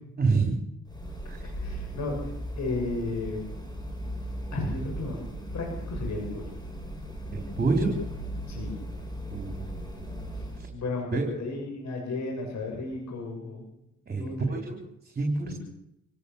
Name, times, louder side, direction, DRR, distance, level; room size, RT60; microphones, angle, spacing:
voice 1, 0.2-0.7 1.3-1.5 7.3-7.9 9.3-10.2 10.6-10.7 11.1-11.3 14.1-15.5, right 3 dB, 30° right, 2 dB, 4.2 m, -28 dB
sound 1, 0.9-10.7, right 1 dB, 15° left, 6.8 m, -37 dB
voice 2, 1.6-2.2 2.6-3.6 4.5-5.2 5.5-6.4 8.5-8.8 10.4-10.5 10.7-13.7 14.1-14.6 15.5-15.6, left 3 dB, 65° left, 1 dB, 7.2 m, -33 dB
27.0 x 17.0 x 7.2 m, 0.82 s
cardioid pair, 90°, 30 cm